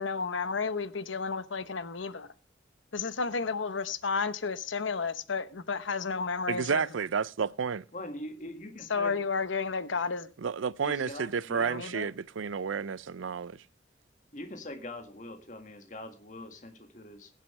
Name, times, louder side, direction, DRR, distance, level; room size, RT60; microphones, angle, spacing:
voice 1, 0.0-2.3 2.9-6.8 8.9-10.3 11.6-12.1, left 5 dB, 85° left, 0.9 m, -32 dB
voice 2, 6.5-7.8 10.4-13.6, right 6 dB, 90° right, 0.5 m, -31 dB
voice 3, 7.9-9.2 10.8-11.8 14.3-17.3, left 1 dB, 40° left, 1.9 m, -43 dB
22.0 x 7.5 x 3.3 m
head